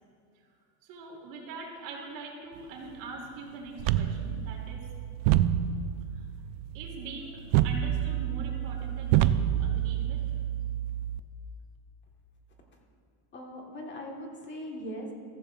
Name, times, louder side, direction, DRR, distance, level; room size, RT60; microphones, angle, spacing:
voice 1, 0.8-4.9 6.1-6.2 6.7-10.2, right 3 dB, 65° right, -1 dB, 3.1 m, -43 dB
sound 1, 3.8-11.2, right 11 dB, 50° right, 0.5 m, -28 dB
voice 2, 13.3-15.1, equal, 25° left, 0 dB, 1.7 m, -40 dB
14.5 x 14.5 x 2.6 m, 2.2 s
supercardioid pair, 135°, 44 cm